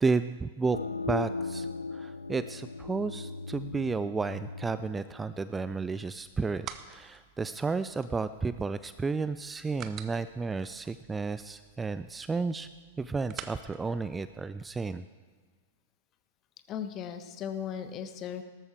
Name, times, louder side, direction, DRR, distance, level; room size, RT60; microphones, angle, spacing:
voice 1, 0.0-0.8 1.1-12.7 13.0-15.1, right 4 dB, 10° right, 13 dB, 0.3 m, -32 dB
sound 1, 0.7-6.1, left 4 dB, 85° left, 0.4 m, -38 dB
sound 2, 6.1-15.0, right 10 dB, 35° right, 0.7 m, -49 dB
voice 2, 16.7-18.4, left 8 dB, 30° left, 8 dB, 1.1 m, -37 dB
18.0 x 13.5 x 3.4 m, 1.5 s
figure-of-eight pair, 100°, 0 cm